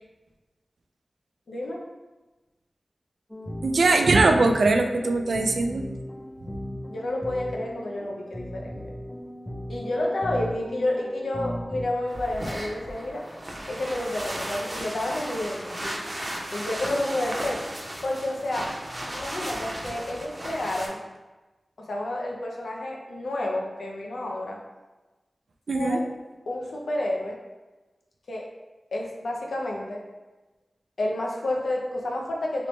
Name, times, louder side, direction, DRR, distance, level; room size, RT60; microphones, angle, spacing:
voice 1, 1.5-1.8 6.9-8.9 9.7-13.2 13.7-16.1 16.5-17.6 18.0-18.7 19.1-21.0 21.8-24.6 25.7-26.1 26.5-27.4 28.3-28.4 28.9-30.0 31.0-32.7, left 1 dB, 85° left, -1 dB, 0.5 m, -30 dB
sound 1, 3.3-11.8, equal, 15° left, 0.4 m, -37 dB
voice 2, 3.6-5.9 25.7-26.0, right 3 dB, 75° right, 5 dB, 0.3 m, -21 dB
sound 2, 12.1-20.9, right 1 dB, 30° right, 0.6 m, -35 dB
3.1 x 3.0 x 3.0 m, 1.2 s
wide cardioid pair, 90°, 0 cm